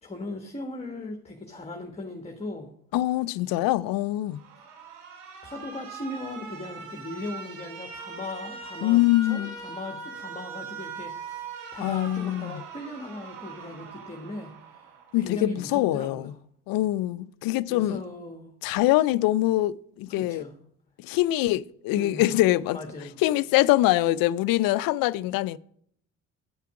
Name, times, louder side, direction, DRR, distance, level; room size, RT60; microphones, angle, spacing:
voice 1, 0.0-2.7 5.4-14.9 15.1-16.3 17.7-18.5 20.1-20.5 21.9-22.3 22.7-23.2, left 2 dB, 15° left, 1.4 m, -38 dB
voice 2, 2.9-4.4 8.8-9.5 11.8-12.6 15.1-16.3 16.7-18.0 18.6-20.4 21.0-22.8 23.2-25.6, left 16 dB, 65° left, 0.5 m, -24 dB
Alarm, 4.3-15.3, right 5 dB, 90° right, 1.4 m, -41 dB
9.5 x 5.7 x 4.9 m
hypercardioid pair, 60°, 37 cm